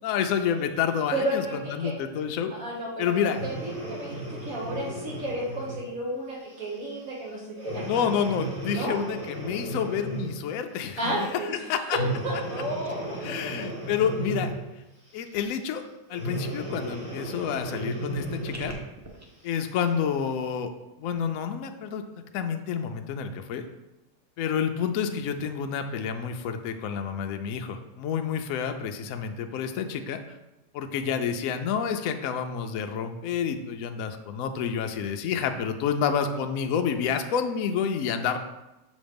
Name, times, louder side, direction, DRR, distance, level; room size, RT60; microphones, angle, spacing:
voice 1, 0.0-1.4 1.7-2.5 3.0-3.4 7.9-11.3 11.7-12.0 13.2-14.5 15.1-15.8 16.1-18.7 19.4-20.7 21.0-22.0 22.3-23.7 24.4-30.2 30.7-38.4, left 7 dB, 70° left, 6 dB, 0.8 m, -29 dB
voice 2, 1.1-2.0 2.5-8.0 8.7-8.9 11.0-11.6 11.9-13.9, right 1 dB, 55° right, -4 dB, 1.6 m, -33 dB
Breathing, 3.2-5.9 6.5-6.7 7.6-10.4 11.9-14.7 16.1-18.9 19.5-19.6, right 1 dB, 75° right, 3.2 m, -34 dB
sound 1, 17.5-19.2, equal, 20° right, 0.5 m, -46 dB
7.0 x 3.1 x 5.1 m, 0.99 s
omnidirectional pair, 1.8 m